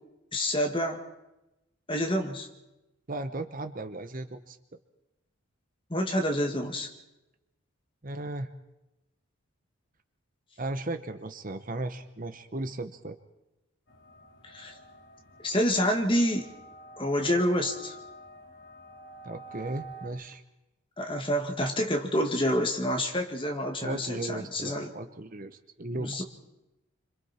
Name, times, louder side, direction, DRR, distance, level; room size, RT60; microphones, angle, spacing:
voice 1, 0.3-1.0 1.9-2.5 5.9-6.9 14.4-14.7 15.4-16.5 17.0-18.0 21.0-24.9 25.9-26.2, equal, 25° left, 3 dB, 2.0 m, -28 dB
voice 2, 3.1-4.6 8.0-8.5 10.6-13.2 19.2-20.4 23.8-26.1, right 2 dB, 40° right, 9 dB, 0.9 m, -36 dB
sound 1, 13.9-20.1, right 2 dB, 60° left, 2.7 m, -48 dB
27.5 x 26.0 x 4.4 m, 0.96 s
head